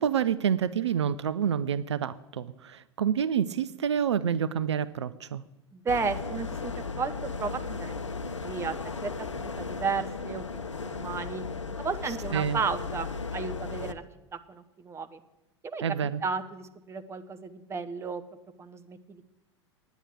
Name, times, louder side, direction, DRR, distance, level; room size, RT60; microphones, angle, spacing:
voice 1, 0.0-5.4 12.3-12.6 15.8-16.2, right 8 dB, 70° right, 15 dB, 0.5 m, -28 dB
voice 2, 5.7-8.0 8.4-11.4 11.8-14.0 14.3-15.2 15.6-15.8 16.2-18.2 18.6-19.2, right 5 dB, 15° right, 10 dB, 0.8 m, -34 dB
sound 1, 5.9-13.9, left 4 dB, 85° left, 0.6 m, -36 dB
9.9 x 9.2 x 8.2 m, 0.99 s
figure-of-eight pair, 90°, 15 cm